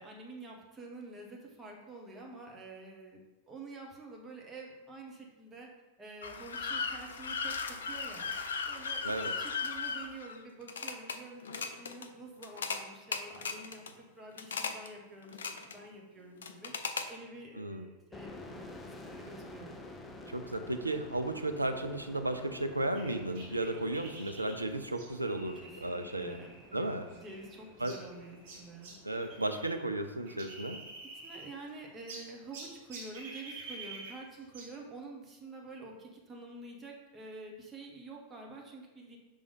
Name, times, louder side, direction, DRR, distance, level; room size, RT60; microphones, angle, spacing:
voice 1, 0.0-5.7 6.0-8.3 8.6-19.8 25.6-26.9 27.1-28.9 31.1-39.2, right 2 dB, 20° right, 0 dB, 1.2 m, -48 dB
sound 1, 6.2-11.2 11.4-12.1 12.4-12.8 13.1-13.9 14.4-14.9 15.2-15.8 16.4-17.1, left 5 dB, 65° left, 0.4 m, -37 dB
voice 2, 9.0-9.3 17.6-17.9 20.3-26.4 26.7-27.1 27.8-27.9 29.0-30.8, right 1 dB, 85° right, 7 dB, 0.4 m, -34 dB
sound 2, 18.1-31.6, left 2 dB, 15° left, 0.6 m, -51 dB
sound 3, 22.9-29.8 30.0-31.7 32.1-34.8, right 3 dB, 50° right, 1.2 m, -49 dB
5.3 x 3.4 x 5.3 m, 1.1 s
figure-of-eight pair, 90°, 0 cm